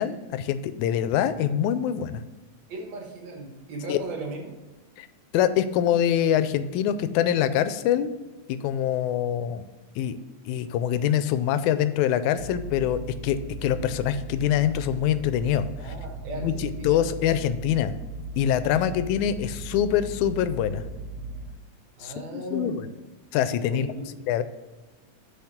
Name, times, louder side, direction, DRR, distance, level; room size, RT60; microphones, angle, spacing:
voice 1, 0.0-2.2 3.9-4.0 5.0-5.1 5.3-8.1 8.5-9.6 10.0-10.2 10.5-15.9 16.4-17.9 18.4-20.8 22.0-22.9 23.3-23.9 24.3-24.4, left 10 dB, 85° left, 13 dB, 2.0 m, -24 dB
voice 2, 2.7-4.5 8.9-9.0 15.8-17.0 18.6-19.0 22.0-22.9 23.7-24.1, right 2 dB, 65° right, 1 dB, 2.5 m, -37 dB
sound 1, 12.4-21.5, right 2 dB, 85° right, 2.3 m, -37 dB
7.1 x 5.1 x 5.8 m, 1.2 s
omnidirectional pair, 3.3 m